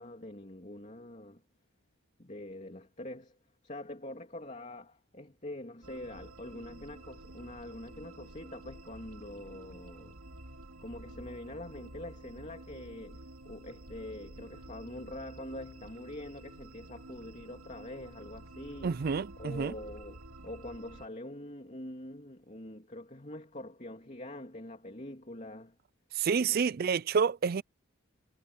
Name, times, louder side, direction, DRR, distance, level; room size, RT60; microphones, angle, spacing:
voice 1, 0.0-1.4 2.2-3.4 3.6-10.2 10.8-19.0 19.4-25.8 26.5-26.6, left 1 dB, 35° left, 3.0 m, -44 dB
sound 1, 5.8-21.1, right 1 dB, 85° right, 2.8 m, -50 dB
voice 2, 18.8-19.7 26.1-27.6, right 6 dB, 45° right, 0.4 m, -29 dB
head